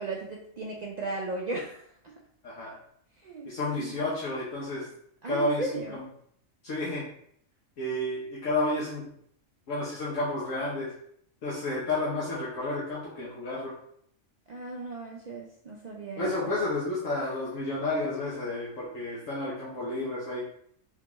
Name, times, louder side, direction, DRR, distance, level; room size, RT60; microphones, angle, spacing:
voice 1, 0.0-2.1 3.2-3.5 3.8-4.0 5.2-6.0 14.5-16.6, right 3 dB, 75° right, -2 dB, 0.3 m, -36 dB
voice 2, 2.4-2.8 3.5-4.9 5.2-6.0 6.6-7.1 7.8-9.0 9.7-10.9 11.4-13.7 16.2-20.4, left 2 dB, 70° left, -7 dB, 1.3 m, -31 dB
3.7 x 3.4 x 2.9 m, 0.67 s
omnidirectional pair, 1.4 m